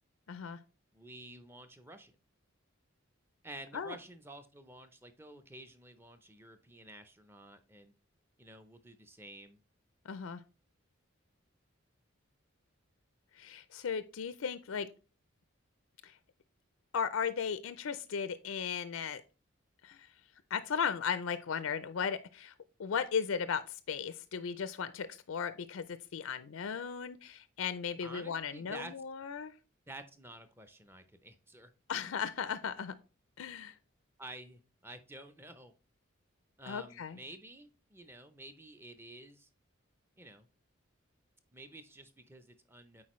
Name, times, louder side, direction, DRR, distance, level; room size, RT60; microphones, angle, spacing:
voice 1, 0.3-0.6 3.7-4.0 10.0-10.4 13.3-14.9 16.0-16.2 16.9-19.2 19.8-20.1 20.5-22.5 22.8-29.5 31.9-32.9 33.4-33.7 36.6-37.2, left 6 dB, 80° left, 14 dB, 0.4 m, -36 dB
voice 2, 0.9-2.2 3.4-7.9 8.4-9.6 28.0-28.9 29.9-31.7 34.2-35.7 36.6-39.5 40.2-40.5 41.5-43.0, right 1 dB, 10° right, 8 dB, 0.5 m, -51 dB
8.6 x 4.3 x 3.1 m, 0.32 s
head